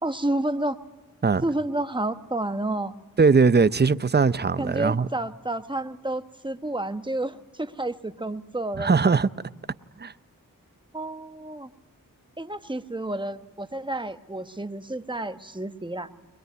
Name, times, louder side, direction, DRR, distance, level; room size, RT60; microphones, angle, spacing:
voice 1, 0.0-0.8 1.4-2.9 4.6-8.9 10.9-11.7 12.4-16.1, right 1 dB, 15° right, 1.2 m, -30 dB
voice 2, 3.2-5.1 8.8-9.3 10.0-10.1, right 4 dB, 30° right, 0.7 m, -20 dB
23.0 x 21.0 x 9.5 m
cardioid pair, 40°, 35 cm